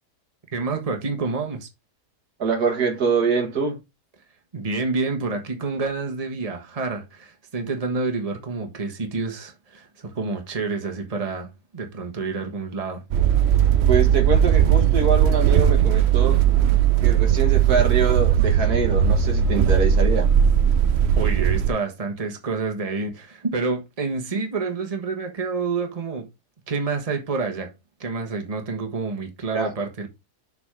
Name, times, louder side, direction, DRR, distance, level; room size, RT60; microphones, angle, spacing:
voice 1, 0.5-1.7 4.5-13.0 21.2-26.3 26.7-27.7 28.0-30.1, right 4 dB, 25° right, 1.4 m, -28 dB
voice 2, 2.4-3.8 13.9-16.4 17.0-20.3 29.5-29.7, right 5 dB, 75° right, 2.2 m, -24 dB
sound 1, 13.1-21.7, right 9 dB, 60° right, 0.7 m, -18 dB
7.0 x 4.1 x 5.0 m
omnidirectional pair, 1.7 m